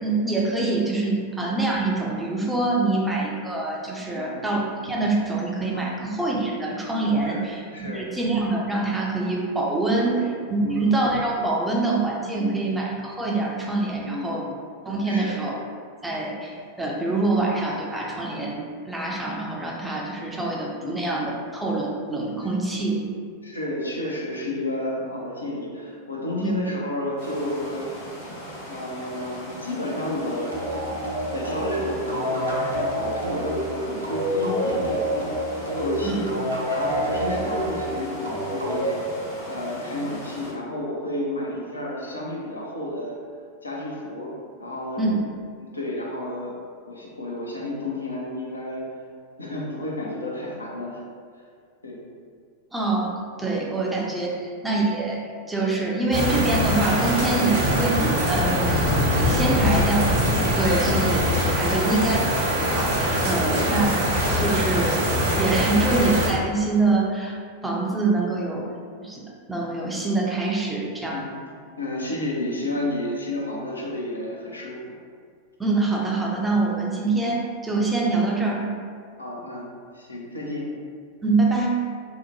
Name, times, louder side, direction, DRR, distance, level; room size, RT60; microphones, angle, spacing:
voice 1, 0.0-10.2 10.5-14.5 14.9-15.6 16.0-23.0 26.4-26.5 36.0-36.2 45.0-45.2 52.7-53.1 53.4-55.2 55.5-58.9 59.1-60.0 60.6-61.2 61.6-64.1 64.4-65.0 65.4-67.4 67.6-68.7 69.0-71.3 75.6-78.6 81.2-81.8, right 3 dB, 5° right, -3 dB, 0.4 m, -25 dB
voice 2, 4.1-4.5 5.7-5.9 7.2-7.4 7.7-8.1 10.1-10.4 10.6-10.9 12.4-12.7 14.0-14.5 15.0-15.4 20.8-21.0 22.6-22.7 23.4-28.0 28.7-30.5 31.3-36.3 36.7-39.0 39.4-43.2 43.6-44.3 44.6-45.0 45.6-46.5 46.9-48.8 49.4-51.0 51.8-52.0 53.5-53.8 54.1-54.2 58.5-58.7 59.6-59.8 60.7-61.1 61.7-62.0 63.3-63.7 65.6-65.8 71.1-71.3 71.8-75.0 79.2-79.7 79.9-80.7, left 1 dB, 80° left, -4 dB, 0.5 m, -31 dB
sound 1, 27.2-40.5, equal, 55° left, 0.9 m, -39 dB
sound 2, 30.5-39.8, equal, 80° right, 0.5 m, -27 dB
sound 3, 56.1-66.3, equal, 55° right, 0.8 m, -22 dB
2.8 x 2.1 x 2.7 m, 2.1 s
figure-of-eight pair, 90°, 0 cm